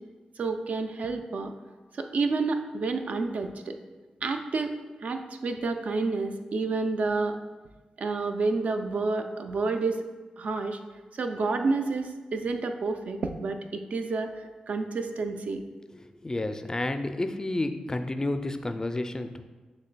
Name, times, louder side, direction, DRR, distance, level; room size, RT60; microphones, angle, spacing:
voice 1, 0.4-1.5 2.0-3.7 4.2-4.8 5.0-7.4 8.0-10.0 10.4-10.8 11.1-14.3 14.7-15.6, right 3 dB, 65° right, 6 dB, 0.4 m, -29 dB
voice 2, 16.0-19.4, left 2 dB, 25° left, 8 dB, 0.3 m, -31 dB
6.4 x 3.2 x 2.2 m, 1.3 s
supercardioid pair, 45°, 3 cm